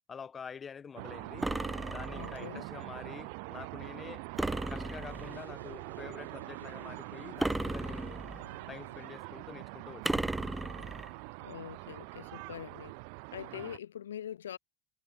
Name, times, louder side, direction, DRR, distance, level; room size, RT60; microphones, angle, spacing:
voice 1, 0.1-1.5 1.9-4.2 4.7-8.2 8.7-10.5 13.5-13.8, left 6 dB, 30° left, 2.6 m, -47 dB
sound 1, 1.0-13.8, right 39 dB, 55° right, 1.6 m, -44 dB
sound 2, 1.4-2.5 4.4-5.4 7.4-8.5 10.0-11.1, right 2 dB, 10° right, 0.6 m, -35 dB
voice 2, 2.1-2.7 11.4-13.0 13.3-14.6, left 10 dB, 70° left, 0.8 m, -43 dB
sound 3, 3.0-9.1, right 2 dB, 85° right, 4.2 m, -56 dB
figure-of-eight pair, 70°, 0 cm